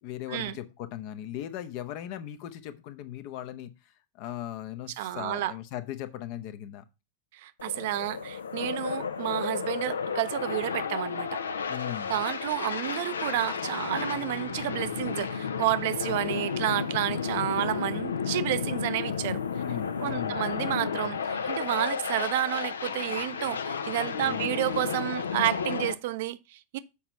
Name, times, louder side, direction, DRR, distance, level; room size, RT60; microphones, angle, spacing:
voice 1, 0.0-6.8 11.7-12.2 19.5-20.4 24.2-24.6, left 12 dB, 45° left, 0.8 m, -38 dB
voice 2, 5.0-5.5 7.3-11.4 12.1-19.4 20.0-26.8, right 14 dB, 50° right, 0.5 m, -30 dB
sound 1, 7.6-25.9, left 6 dB, 70° left, 0.6 m, -32 dB
sound 2, 11.6-17.1, left 9 dB, 15° left, 1.3 m, -52 dB
7.1 x 5.0 x 5.6 m
figure-of-eight pair, 90°, 0 cm